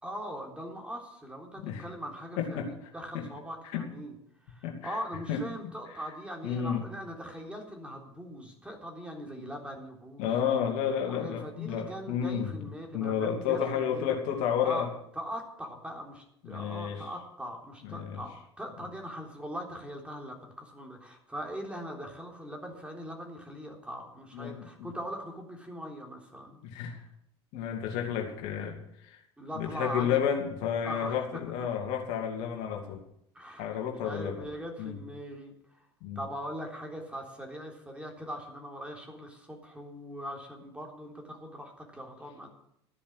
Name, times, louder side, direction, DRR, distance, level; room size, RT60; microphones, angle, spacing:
voice 1, 0.0-4.1 4.5-10.3 11.0-14.1 14.6-14.9 15.2-26.6 29.4-30.3 30.8-31.2 33.3-35.8 36.2-42.5, equal, 10° right, 1 dB, 3.6 m, -41 dB
voice 2, 2.4-2.7 3.1-3.3 3.7-3.9 4.6-5.0 5.3-5.4 6.4-6.8 9.3-9.4 10.2-12.6 12.9-14.9 16.4-17.1 17.8-18.2 24.3-24.9 26.6-27.0 27.5-29.2 29.5-33.0 33.6-34.5 34.8-35.0 36.0-36.2, left 8 dB, 60° left, 2 dB, 2.6 m, -31 dB
13.5 x 10.0 x 6.4 m, 0.74 s
hypercardioid pair, 75°, 14 cm